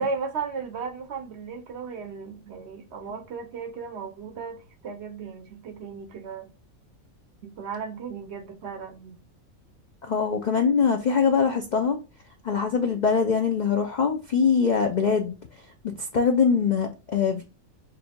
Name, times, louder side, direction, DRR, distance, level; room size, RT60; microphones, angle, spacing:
voice 1, 0.0-6.5 7.4-9.2, right 5 dB, 60° right, 0.8 m, -35 dB
voice 2, 10.0-12.0 12.4-15.4 16.1-17.4, left 6 dB, 65° left, 0.4 m, -23 dB
5.7 x 2.6 x 2.2 m
omnidirectional pair, 1.4 m